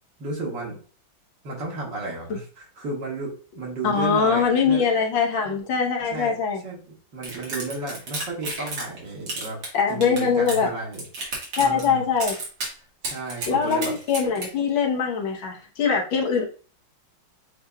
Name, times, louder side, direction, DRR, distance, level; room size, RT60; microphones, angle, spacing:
voice 1, 0.2-0.8 1.4-4.8 6.1-6.3 6.6-6.8 7.1-9.6 9.9-11.0 11.6-12.1 13.1-14.0, right 3 dB, 65° right, -2 dB, 2.2 m, -33 dB
voice 2, 3.8-6.6 9.7-10.7 11.6-12.4 13.5-16.4, left 6 dB, 80° left, 1 dB, 1.7 m, -22 dB
sound 1, 7.2-9.0 9.3-10.6 10.9-11.9 12.2-12.7 13.0-14.5, right 2 dB, 85° right, 2.4 m, -32 dB
7.7 x 2.9 x 2.3 m, 0.39 s
omnidirectional pair, 2.1 m